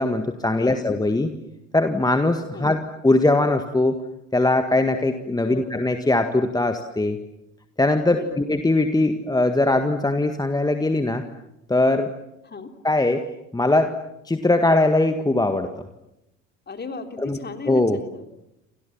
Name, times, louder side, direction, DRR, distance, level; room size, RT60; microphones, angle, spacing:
voice 1, 0.0-1.4 1.7-4.0 4.3-7.2 7.8-11.2 11.7-12.1 12.8-13.3 13.5-14.0 14.3-15.7 17.2-17.4 17.7-18.0, left 2 dB, 10° left, 7 dB, 1.8 m, -21 dB
voice 2, 0.5-0.9 2.5-2.8 5.4-5.8 8.0-8.5 12.4-12.7 16.7-18.3, left 4 dB, 25° left, 6 dB, 3.6 m, -36 dB
29.5 x 26.5 x 7.4 m, 0.89 s
figure-of-eight pair, 60°, 38 cm